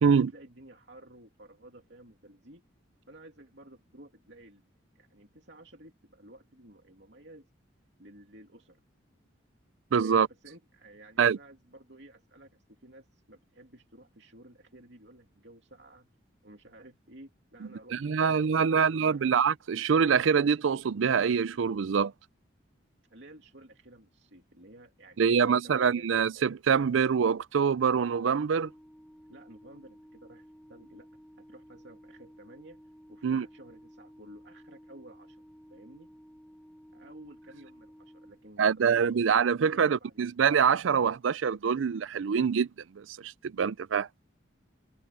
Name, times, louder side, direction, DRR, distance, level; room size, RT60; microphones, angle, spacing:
voice 1, 0.0-2.6 3.1-4.6 4.9-7.5 8.0-8.8 10.0-16.1 16.4-19.3 23.1-26.1 29.3-31.1 31.4-32.8 33.1-35.4 35.7-36.1 36.9-39.0 39.7-40.2, right 1 dB, 65° right, 2.7 m, -53 dB
voice 2, 9.9-10.3 11.2-11.4 17.9-22.1 25.2-28.7 33.2-33.5 38.6-42.7 43.0-44.1, right 6 dB, 80° right, 0.4 m, -25 dB
Organ, 28.1-39.0, equal, 5° left, 3.9 m, -54 dB
open air
head